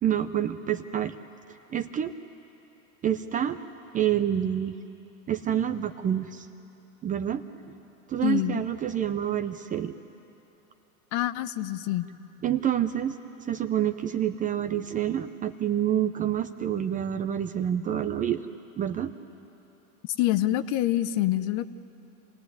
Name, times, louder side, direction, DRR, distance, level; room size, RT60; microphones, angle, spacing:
voice 1, 0.0-1.1 1.7-2.1 3.0-3.6 3.9-4.8 5.3-6.5 7.0-7.7 8.1-9.9 12.4-13.2 13.5-18.4 18.8-19.1, right 10 dB, 20° right, 9 dB, 0.5 m, -27 dB
voice 2, 8.2-8.6 11.1-12.1 20.2-21.7, left 14 dB, 40° left, 14 dB, 0.8 m, -26 dB
27.5 x 18.0 x 9.5 m, 2.9 s
hypercardioid pair, 120°, 44 cm